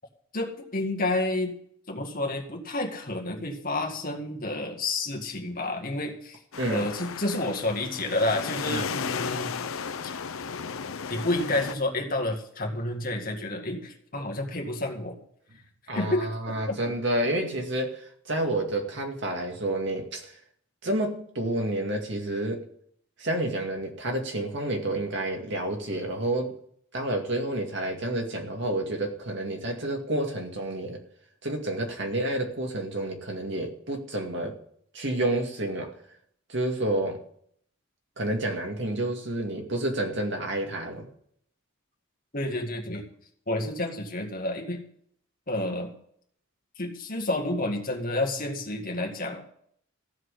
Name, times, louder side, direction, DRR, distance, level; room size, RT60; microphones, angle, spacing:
voice 1, 0.3-1.5 1.9-6.4 6.7-9.6 10.0-10.1 11.1-15.2 15.9-16.8 42.3-43.0 43.5-44.8 45.5-45.9 46.8-49.4, left 2 dB, 40° left, 2 dB, 2.0 m, -30 dB
sound 1, 6.5-11.7, left 6 dB, 80° left, 0.7 m, -34 dB
voice 2, 6.6-6.9 8.7-8.9 15.9-20.4 20.8-22.6 23.2-26.6 26.9-31.0 31.4-34.6 34.9-36.0 36.5-37.2 38.2-41.1, right 1 dB, 55° right, 2 dB, 2.2 m, -29 dB
15.0 x 6.2 x 8.2 m, 0.66 s
head